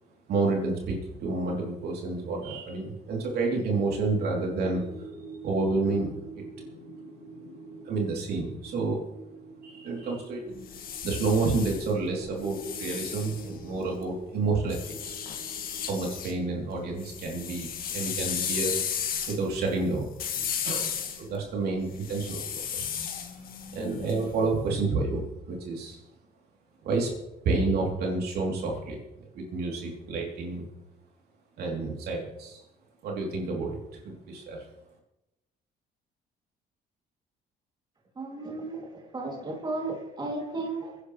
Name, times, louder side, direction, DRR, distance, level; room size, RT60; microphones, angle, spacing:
voice 1, 0.3-4.8 5.2-6.1 6.4-6.5 7.8-9.0 9.6-10.5 11.0-15.2 15.9-18.7 19.3-20.1 20.6-23.1 23.7-26.0 26.8-27.1 27.4-29.0 29.3-30.6 31.6-32.6 33.0-34.6, right 3 dB, 70° right, -1 dB, 3.4 m, -29 dB
sound 1, 3.4-17.8, right 2 dB, 85° left, 2.4 m, -46 dB
sound 2, 10.5-14.0 14.7-16.3 16.7-24.6, left 8 dB, 60° left, 2.0 m, -35 dB
voice 2, 38.1-38.9 39.1-41.0, right 2 dB, 25° right, -1 dB, 3.0 m, -34 dB
24.5 x 10.5 x 3.4 m, 0.92 s
cardioid pair, 110°, 17 cm